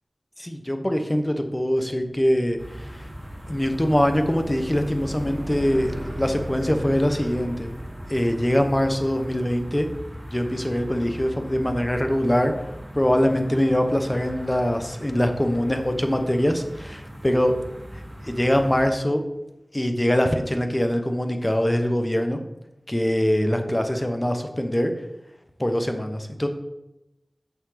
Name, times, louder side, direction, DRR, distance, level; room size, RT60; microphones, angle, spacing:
voice 1, 0.4-3.1 3.5-7.7 8.1-9.9 10.3-12.5 12.9-17.5 18.2-19.2 19.7-22.4 22.9-24.9 25.6-26.5, equal, 20° left, 5 dB, 1.1 m, -23 dB
sound 1, 2.0-9.8, equal, 70° right, 1.7 m, -38 dB
sound 2, 2.6-18.9, equal, 30° right, 2.9 m, -40 dB
8.9 x 6.3 x 4.0 m, 0.93 s
wide cardioid pair, 45°, 0 cm